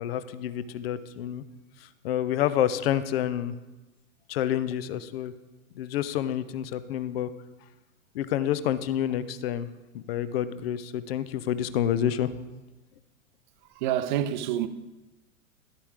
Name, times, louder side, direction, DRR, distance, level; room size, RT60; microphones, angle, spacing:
voice 1, 0.0-1.4 1.8-3.5 4.3-5.3 5.8-7.3 8.1-9.7 9.9-12.3, left 10 dB, 45° left, 0.6 m, -28 dB
voice 2, 13.8-14.7, right 11 dB, 35° right, 0.5 m, -27 dB
11.5 x 8.4 x 3.5 m
figure-of-eight pair, 100°, 42 cm